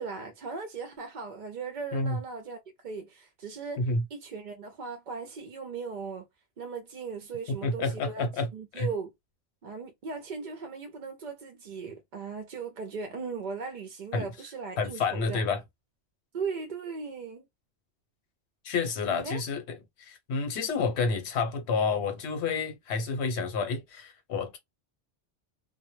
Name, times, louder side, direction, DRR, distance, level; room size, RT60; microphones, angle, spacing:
voice 1, 0.0-6.3 6.6-8.3 8.5-9.1 9.6-15.4 16.3-17.4 19.1-19.4, right 5 dB, 55° right, 0.5 m, -38 dB
voice 2, 7.6-8.5 8.8-8.9 14.1-14.3 14.8-15.6 18.6-19.6 20.0-24.6, left 4 dB, 70° left, 1.0 m, -29 dB
2.1 x 2.0 x 3.0 m
omnidirectional pair, 1.2 m